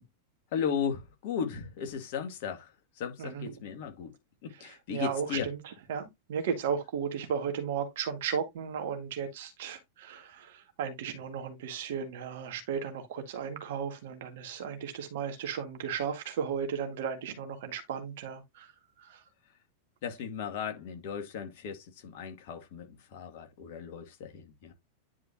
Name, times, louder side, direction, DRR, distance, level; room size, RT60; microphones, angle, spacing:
voice 1, 0.5-4.1 4.4-5.5 20.0-24.7, left 7 dB, 50° left, 2.0 m, -36 dB
voice 2, 4.6-5.6 5.9-18.7 19.0-19.2, right 7 dB, 55° right, 1.8 m, -35 dB
10.0 x 4.6 x 2.8 m
figure-of-eight pair, 90°, 0 cm